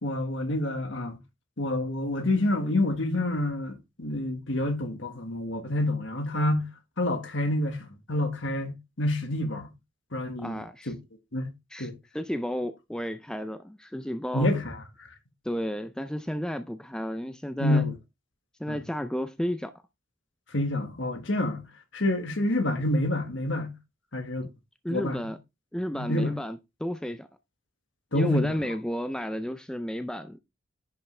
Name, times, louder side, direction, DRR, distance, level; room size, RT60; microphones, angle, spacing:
voice 1, 0.0-1.2 1.6-6.7 7.0-9.7 10.1-11.0 11.3-11.5 11.8-12.0 14.3-15.1 17.6-17.9 18.7-18.8 20.5-21.6 21.9-23.7 24.1-24.5 24.9-25.2 25.9-26.3 28.1-28.5, left 1 dB, 60° left, 1.6 m, -28 dB
voice 2, 10.4-10.9 11.7-14.5 15.4-17.8 18.6-19.7 24.8-25.4 25.7-27.3 28.1-30.4, equal, 5° left, 0.3 m, -32 dB
10.0 x 5.5 x 3.2 m
head